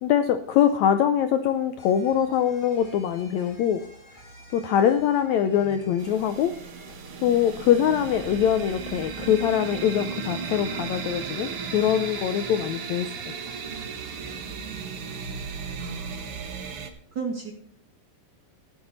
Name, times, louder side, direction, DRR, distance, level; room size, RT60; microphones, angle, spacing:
voice 1, 0.0-3.8 4.5-6.5 7.2-13.1, left 9 dB, 80° left, 9 dB, 1.6 m, -23 dB
sound 1, 1.8-15.7, equal, 35° left, 4.6 m, -51 dB
sound 2, 6.0-16.9, right 5 dB, 60° right, 1.6 m, -35 dB
voice 2, 15.8-16.7 17.1-17.5, right 5 dB, 40° right, 2 dB, 1.8 m, -35 dB
13.5 x 11.0 x 4.1 m, 0.62 s
omnidirectional pair, 4.0 m